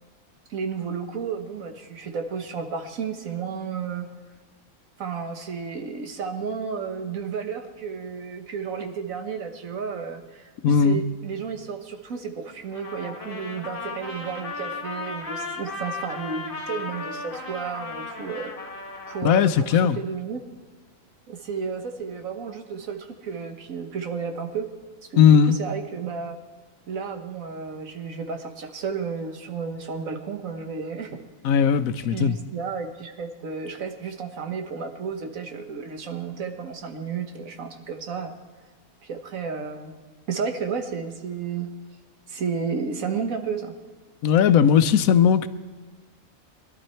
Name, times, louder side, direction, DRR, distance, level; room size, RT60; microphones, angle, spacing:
voice 1, 0.5-4.1 5.0-18.5 19.1-20.4 21.3-24.7 25.1-26.4 26.9-31.2 32.0-38.3 39.0-39.9 40.3-41.7 42.3-43.7, right 6 dB, 75° right, 1.6 m, -32 dB
voice 2, 10.6-11.0 19.2-20.0 25.2-25.6 31.4-32.4 44.2-45.5, left 7 dB, 85° left, 1.1 m, -18 dB
Trumpet, 12.7-19.3, left 3 dB, 40° left, 1.5 m, -35 dB
21.0 x 11.5 x 4.4 m
omnidirectional pair, 1.4 m